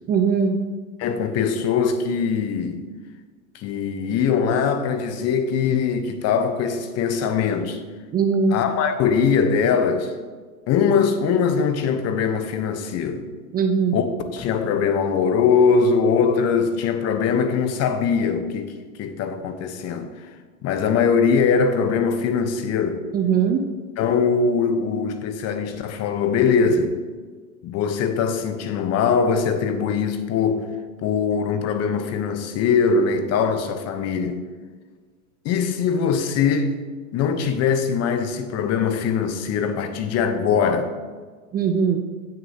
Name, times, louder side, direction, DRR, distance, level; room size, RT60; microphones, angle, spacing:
voice 1, 0.1-0.6 8.1-8.6 13.5-14.0 23.1-23.6 41.5-42.0, right 6 dB, 20° right, 0.6 m, -20 dB
voice 2, 1.0-2.8 3.5-7.8 8.5-10.1 10.7-13.3 13.9-14.1 14.3-18.7 19.0-20.3 20.6-23.0 24.0-26.9 27.6-30.7 31.0-34.4 35.4-36.8 37.1-40.9, left 6 dB, 35° left, 1.0 m, -21 dB
15.5 x 6.6 x 2.9 m
hypercardioid pair, 100°, 43 cm